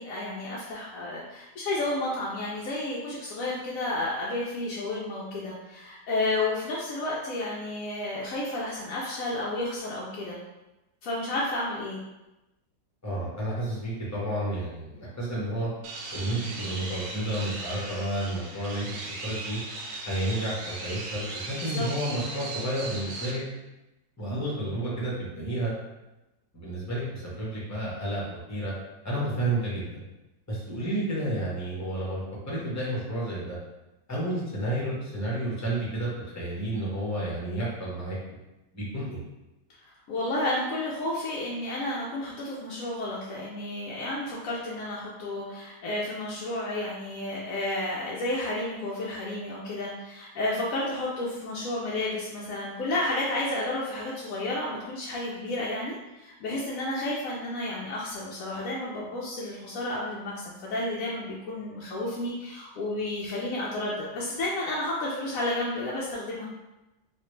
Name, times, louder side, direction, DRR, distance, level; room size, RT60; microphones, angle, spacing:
voice 1, 0.0-10.4 11.0-12.0 21.5-21.8 22.2-22.3 39.8-66.5, left 2 dB, 70° left, -5 dB, 0.8 m, -31 dB
voice 2, 13.0-15.7 16.1-19.6 20.1-23.4 24.2-25.7 26.5-28.7 29.0-30.0 30.5-32.2 32.5-33.6 34.1-38.2 38.7-39.2, right 1 dB, 20° left, -7 dB, 0.5 m, -31 dB
sound 1, 15.8-23.3, right 3 dB, 85° right, 1.3 m, -38 dB
3.1 x 2.5 x 3.1 m, 1.0 s
omnidirectional pair, 1.9 m